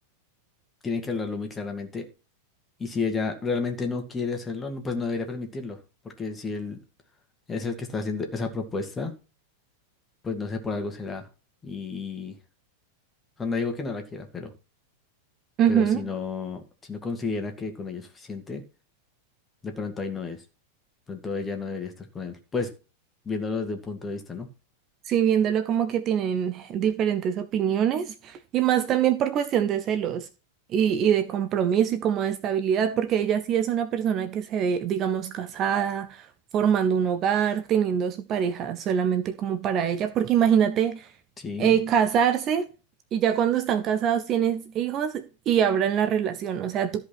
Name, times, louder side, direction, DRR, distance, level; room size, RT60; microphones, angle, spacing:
voice 1, 0.8-2.1 2.8-5.8 6.2-6.8 7.5-9.1 10.2-11.3 11.6-12.4 13.4-14.5 15.7-16.6 16.9-18.6 19.6-20.4 21.1-22.7 23.2-24.5 41.4-41.8, left 4 dB, 15° left, 2.4 m, -31 dB
voice 2, 15.6-16.1 25.1-30.3 30.7-36.3 36.5-41.1 41.6-42.7 43.1-47.0, right 8 dB, 35° right, 0.8 m, -24 dB
13.5 x 5.2 x 6.0 m
figure-of-eight pair, 90°, 0 cm